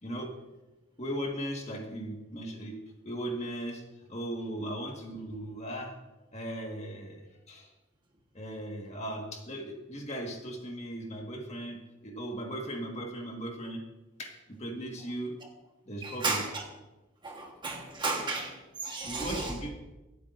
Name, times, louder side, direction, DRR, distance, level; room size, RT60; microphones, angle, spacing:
voice 1, 0.0-0.3 1.0-2.8 3.0-3.8 4.1-6.0 6.3-7.7 8.3-13.8 14.2-15.3 15.9-16.4 19.1-19.7, right 1 dB, 30° left, 1 dB, 1.7 m, -37 dB
voice 2, 16.0-16.6 17.2-18.6 18.8-19.5, right 3 dB, 20° right, 1 dB, 1.3 m, -33 dB
25.0 x 8.4 x 2.6 m, 1.1 s
head